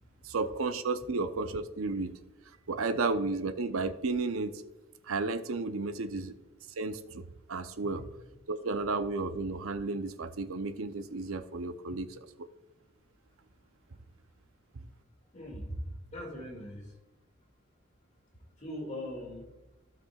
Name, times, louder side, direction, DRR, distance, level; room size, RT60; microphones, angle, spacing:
voice 1, 0.2-2.2 2.7-4.6 5.1-6.3 6.8-8.0 8.5-12.2, right 3 dB, 85° right, 11 dB, 0.6 m, -33 dB
voice 2, 15.3-16.9 18.6-19.5, equal, 35° left, 1 dB, 2.1 m, -40 dB
15.5 x 6.1 x 2.3 m, 1.0 s
head